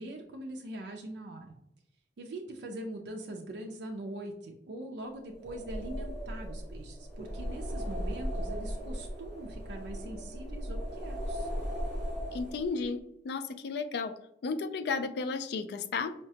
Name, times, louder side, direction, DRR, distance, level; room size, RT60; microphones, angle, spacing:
voice 1, 0.0-1.5 2.2-11.5, right 1 dB, 70° right, 1 dB, 0.4 m, -42 dB
sound 1, 5.3-12.9, equal, 20° left, 1.5 m, -37 dB
voice 2, 12.3-14.1 14.4-16.1, left 4 dB, 65° left, 10 dB, 0.3 m, -33 dB
4.6 x 2.1 x 2.7 m, 0.78 s
head